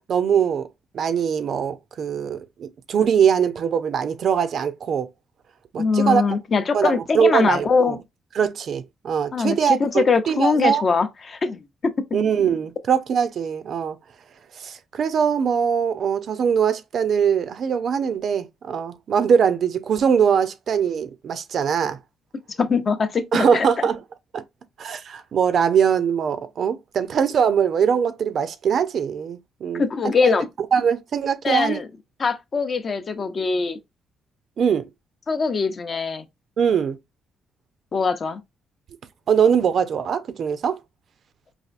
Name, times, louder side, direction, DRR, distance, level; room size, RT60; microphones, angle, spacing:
voice 1, 0.1-0.7 0.9-5.1 5.7-6.4 6.7-8.0 8.3-10.8 12.1-14.0 14.6-22.0 23.3-24.0 24.3-24.4 24.8-29.8 30.2-30.4 30.7-31.8 34.6-34.9 36.6-37.0 39.3-40.8, right 7 dB, 60° right, 0.4 m, -22 dB
voice 2, 5.8-8.0 9.3-12.0 22.6-23.9 29.7-30.5 31.4-31.9 32.2-33.8 35.3-36.2 37.9-38.4, left 4 dB, 45° left, 0.5 m, -22 dB
4.1 x 2.5 x 2.4 m
cardioid pair, 90°, 0 cm